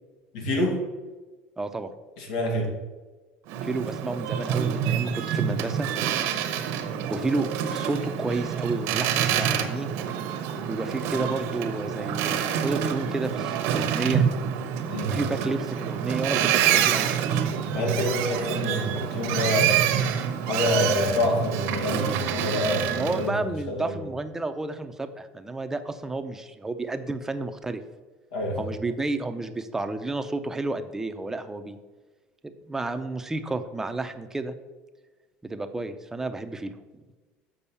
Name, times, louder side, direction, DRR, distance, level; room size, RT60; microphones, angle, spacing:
voice 1, 0.3-0.8 2.2-2.7 14.9-15.1 17.7-19.8 20.5-23.9 28.3-28.7, left 1 dB, 90° left, 1 dB, 2.3 m, -27 dB
voice 2, 1.6-1.9 3.6-5.9 7.1-9.9 10.7-14.2 15.1-17.1 22.9-27.8 28.6-31.8 32.4-34.6 35.4-36.7, right 2 dB, 10° right, 8 dB, 0.6 m, -31 dB
Boat Water vehicle, 3.5-23.3, right 9 dB, 70° right, 1.0 m, -27 dB
7.1 x 5.4 x 6.9 m, 1.3 s
cardioid pair, 135°, 5 cm